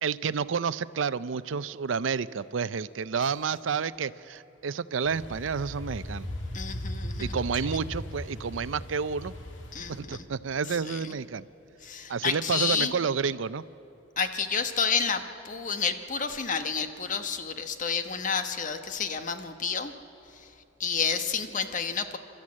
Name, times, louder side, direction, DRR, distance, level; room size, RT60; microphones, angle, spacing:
voice 1, 0.0-6.3 7.2-9.3 9.9-11.5 12.1-13.6, right 6 dB, 80° right, 16 dB, 0.5 m, -30 dB
sound 1, 5.0-10.0, left 1 dB, 75° left, 2.3 m, -38 dB
voice 2, 6.5-7.3 9.7-10.2 10.9-11.0 11.8-12.9 14.2-19.9 20.8-22.2, left 6 dB, 45° left, 8 dB, 1.1 m, -30 dB
29.0 x 13.0 x 8.6 m, 2.9 s
head